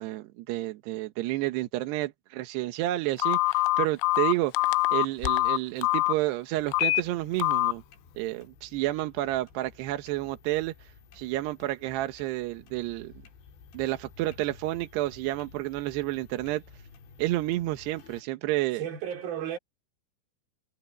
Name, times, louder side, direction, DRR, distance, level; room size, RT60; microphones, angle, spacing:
voice 1, 0.0-7.8 8.2-10.7 11.1-13.1 13.7-16.6 17.2-18.8, right 17 dB, 75° right, 2.6 m, -30 dB
Telephone, 3.2-6.1 6.7-7.0 7.4-7.7, left 23 dB, 85° left, 3.0 m, -24 dB
sound 1, 6.5-18.2, left 5 dB, 65° left, 6.3 m, -53 dB
voice 2, 18.7-19.6, right 9 dB, 50° right, 4.9 m, -33 dB
omnidirectional pair, 5.9 m